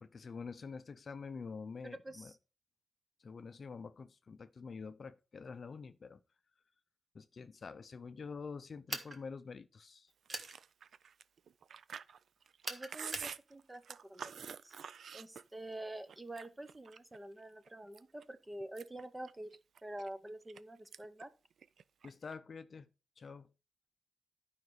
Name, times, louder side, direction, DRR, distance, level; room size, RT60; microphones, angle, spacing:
voice 1, 0.0-2.3 3.2-6.2 7.1-10.1 22.0-22.9 23.2-23.5, left 5 dB, 45° left, 0.5 m, -47 dB
voice 2, 1.8-2.4 12.7-14.3 14.6-14.8 15.1-21.3, right 1 dB, 15° right, 0.7 m, -47 dB
sound 1, 8.9-9.2 10.3-10.5 12.6-13.3, right 2 dB, 35° right, 1.3 m, -41 dB
Chewing mastication, 10.3-15.7 16.1-17.2 17.7-18.2 18.6-20.6 20.9-21.2 21.5-22.3, right 7 dB, 80° right, 0.4 m, -48 dB
12.0 x 5.2 x 4.7 m
wide cardioid pair, 170°, 0 cm